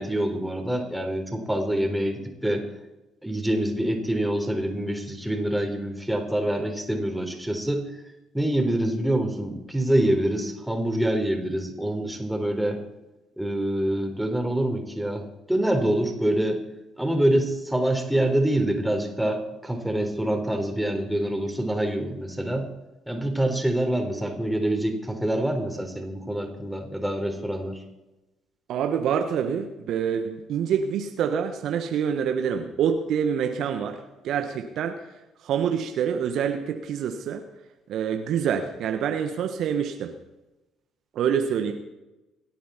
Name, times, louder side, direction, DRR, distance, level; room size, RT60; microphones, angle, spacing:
voice 1, 0.0-2.7 3.2-7.9 8.3-12.8 13.4-16.6 17.0-22.7 23.1-27.8, right 1 dB, 5° right, 3 dB, 3.9 m, -26 dB
voice 2, 28.7-34.0 34.2-35.0 35.4-37.4 37.9-40.1 41.1-41.7, right 7 dB, 60° right, 6 dB, 1.3 m, -26 dB
26.5 x 9.3 x 4.4 m, 1.0 s
hypercardioid pair, 50°, 0 cm